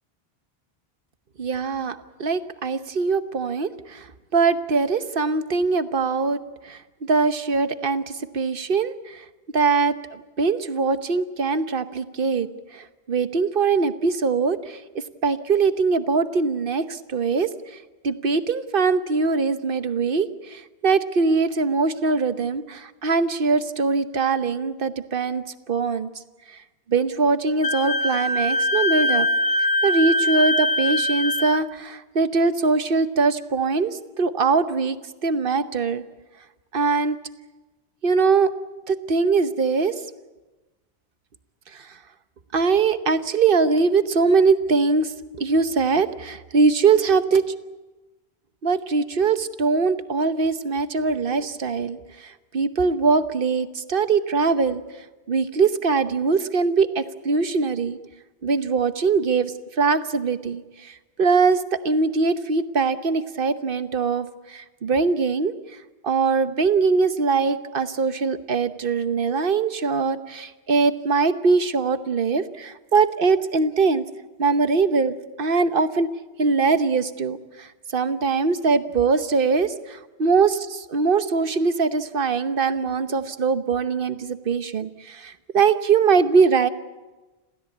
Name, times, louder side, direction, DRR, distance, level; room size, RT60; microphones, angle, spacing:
voice 1, 1.4-4.1 4.3-6.4 6.6-9.2 9.5-12.5 12.7-14.8 15.2-17.5 18.0-26.1 26.9-29.3 29.8-35.0 35.2-36.0 36.7-37.2 38.0-38.5 38.9-39.9 41.7-41.9 42.5-45.1 45.4-47.4 48.6-54.8 55.3-58.0 58.4-65.5 66.0-74.0 74.4-76.1 76.4-77.7 77.9-86.7, right 4 dB, 60° right, 11 dB, 1.2 m, -22 dB
Wind instrument woodwind instrument, 27.6-31.6, left 1 dB, 70° left, 1.3 m, -22 dB
27.0 x 16.0 x 8.5 m, 1.2 s
omnidirectional pair, 1.1 m